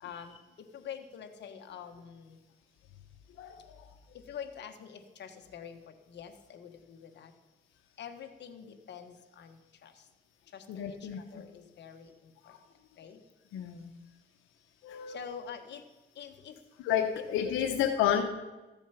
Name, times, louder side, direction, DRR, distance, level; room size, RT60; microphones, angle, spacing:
voice 1, 0.0-2.4 4.1-7.3 8.0-10.1 10.5-12.6 13.0-13.2 15.1-15.8 16.1-16.6 17.2-17.7, left 8 dB, 60° left, 6 dB, 1.4 m, -46 dB
voice 2, 3.4-3.9 10.7-11.2 12.4-12.6 13.5-13.9 14.8-15.2 16.8-18.2, left 9 dB, 90° left, 5 dB, 0.9 m, -30 dB
14.0 x 7.2 x 5.8 m, 1.2 s
cardioid pair, 90°, 20 cm